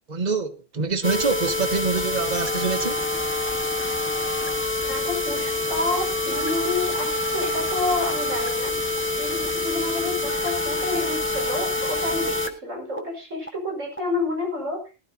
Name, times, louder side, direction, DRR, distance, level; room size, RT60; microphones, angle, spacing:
voice 1, 0.1-3.0, right 4 dB, 35° right, 1.3 m, -25 dB
sound 1, 1.0-12.5 13.0-13.1 13.5-13.6 14.0-14.1, left 2 dB, 10° left, 1.3 m, -26 dB
voice 2, 4.8-8.9 9.2-14.8, left 2 dB, 80° right, 5.6 m, -29 dB
19.0 x 12.5 x 2.8 m
omnidirectional pair, 1.3 m